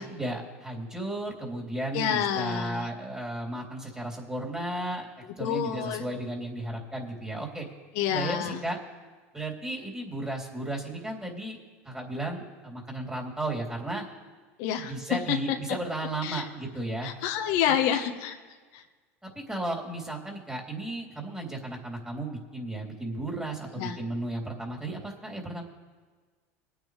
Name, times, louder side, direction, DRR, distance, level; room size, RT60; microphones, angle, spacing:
voice 1, 0.0-5.1 5.4-7.7 8.1-8.8 9.3-11.6 11.8-14.0 14.8-17.1 17.8-18.0 19.2-25.6, right 1 dB, 10° right, -1 dB, 3.4 m, -34 dB
voice 2, 1.9-2.9 5.4-6.0 7.9-8.6 14.6-14.9 16.2-16.4 17.0-18.3 23.8-24.0, left 9 dB, 65° left, 4 dB, 1.2 m, -28 dB
22.0 x 9.1 x 3.4 m, 1.4 s
hypercardioid pair, 95°, 8 cm